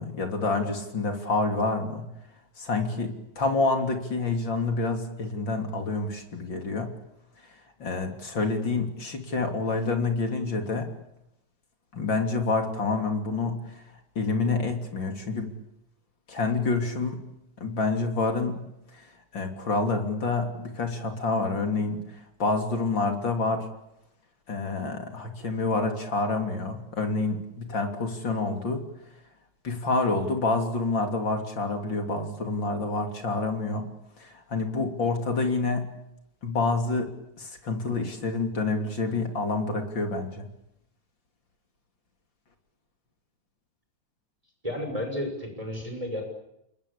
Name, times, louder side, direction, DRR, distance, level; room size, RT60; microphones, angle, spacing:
voice 1, 0.0-2.1 2.6-6.9 7.8-10.9 11.9-13.6 14.2-15.5 16.3-17.2 17.6-18.6 19.3-22.0 22.4-23.6 24.5-28.8 29.6-33.9 34.2-35.9 36.4-40.5, left 3 dB, 40° left, 4 dB, 3.6 m, -28 dB
voice 2, 44.6-46.2, left 1 dB, 10° right, 4 dB, 6.4 m, -32 dB
28.0 x 22.5 x 8.7 m, 0.82 s
omnidirectional pair, 3.4 m